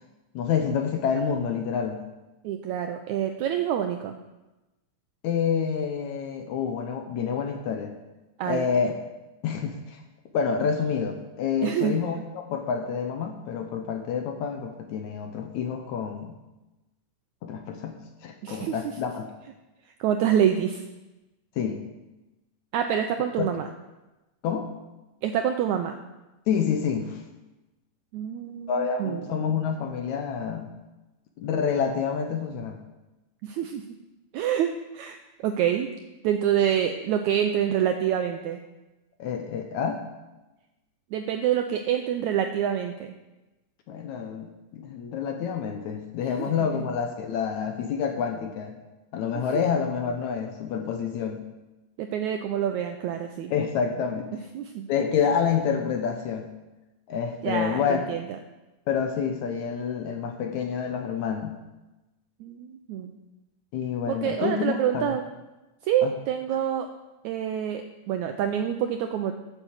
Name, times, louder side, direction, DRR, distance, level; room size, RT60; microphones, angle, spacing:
voice 1, 0.4-2.0 5.2-7.9 8.5-8.9 9.4-10.0 10.3-16.3 17.4-18.0 18.2-19.3 21.6-21.8 23.4-23.5 24.4-24.7 26.5-27.2 28.7-30.7 31.4-32.8 39.2-40.1 43.9-48.8 49.1-51.5 53.5-54.4 54.9-56.5 57.1-58.0 58.9-61.5 63.7-65.1 66.0-66.1, left 7 dB, 70° left, 4 dB, 1.9 m, -28 dB
voice 2, 2.4-4.2 8.4-8.6 11.6-12.2 18.4-18.8 20.0-20.8 22.7-23.6 25.2-26.0 28.1-29.4 33.4-33.8 34.3-35.9 36.2-38.6 41.1-43.1 46.2-46.5 49.3-49.6 52.0-53.5 54.5-54.8 57.4-58.4 62.4-63.2 64.1-65.2 65.8-66.9 67.2-69.4, right 9 dB, 85° right, 6 dB, 1.7 m, -27 dB
9.0 x 8.1 x 7.2 m, 1.1 s
omnidirectional pair, 4.0 m